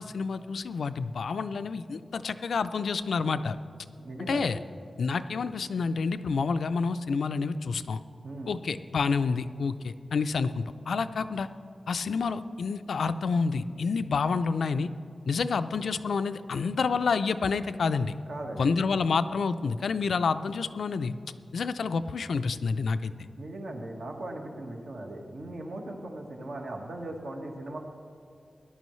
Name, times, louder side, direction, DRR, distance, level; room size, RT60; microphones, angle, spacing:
voice 1, 0.0-3.6 4.2-4.6 5.0-8.0 8.5-11.5 11.9-14.9 15.3-18.1 18.6-21.2 21.5-23.1, left 5 dB, 85° left, 11 dB, 0.4 m, -28 dB
voice 2, 4.0-4.5 8.2-8.6 18.3-18.7 23.4-27.8, right 1 dB, 65° right, 1 dB, 1.4 m, -38 dB
18.0 x 11.0 x 3.2 m, 2.5 s
wide cardioid pair, 170°, 0 cm